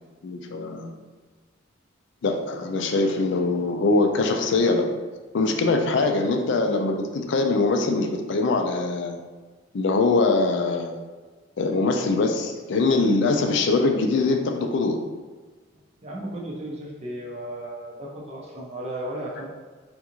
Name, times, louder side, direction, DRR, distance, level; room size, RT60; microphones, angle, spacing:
voice 1, 0.2-1.0 2.2-4.9 5.3-9.2 9.7-11.0 11.6-15.0, left 3 dB, 60° left, 4 dB, 0.4 m, -23 dB
voice 2, 16.0-19.4, right 1 dB, 30° right, -4 dB, 0.5 m, -34 dB
3.5 x 2.5 x 2.9 m, 1.3 s
head